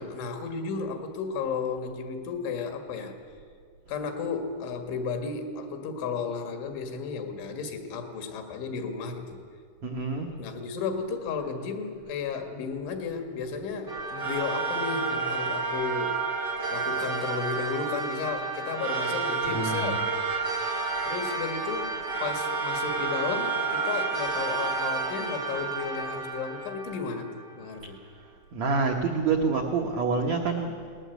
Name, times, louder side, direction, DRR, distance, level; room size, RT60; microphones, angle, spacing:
voice 1, 0.0-3.2 3.9-9.4 10.4-16.2 16.7-20.1 21.0-28.0, left 5 dB, 90° left, 5 dB, 4.3 m, -33 dB
voice 2, 9.8-10.4 19.5-20.0 27.8-27.9 28.5-30.8, right 4 dB, 80° right, 2 dB, 1.5 m, -27 dB
sound 1, 13.9-27.6, right 4 dB, 30° right, 2.3 m, -30 dB
20.0 x 19.0 x 8.2 m, 2.1 s
omnidirectional pair, 5.2 m